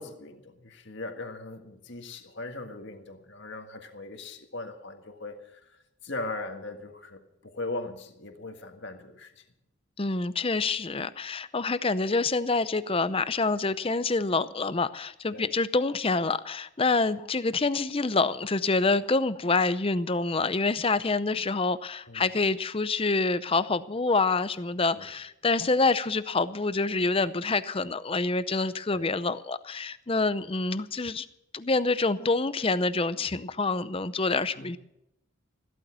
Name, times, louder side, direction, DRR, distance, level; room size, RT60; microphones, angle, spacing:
voice 1, 0.0-9.4 15.3-15.5 22.1-22.3 24.9-25.1 28.9-29.1 34.6-34.8, left 2 dB, 55° left, 1.7 m, -39 dB
voice 2, 10.0-31.3 31.5-34.8, left 3 dB, 25° left, 0.6 m, -27 dB
14.5 x 13.0 x 6.2 m
head